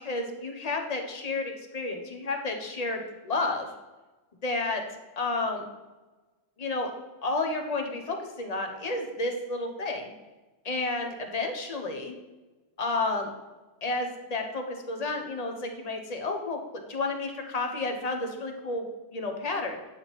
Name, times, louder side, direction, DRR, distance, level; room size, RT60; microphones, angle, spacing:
voice 1, 0.1-3.7 4.4-4.8 5.2-5.6 6.6-6.9 7.2-10.1 10.6-12.2 12.8-13.3 13.8-18.8 19.1-19.8, left 2 dB, 35° left, 4 dB, 0.8 m, -31 dB
8.5 x 3.7 x 4.0 m, 1.2 s
omnidirectional pair, 1.3 m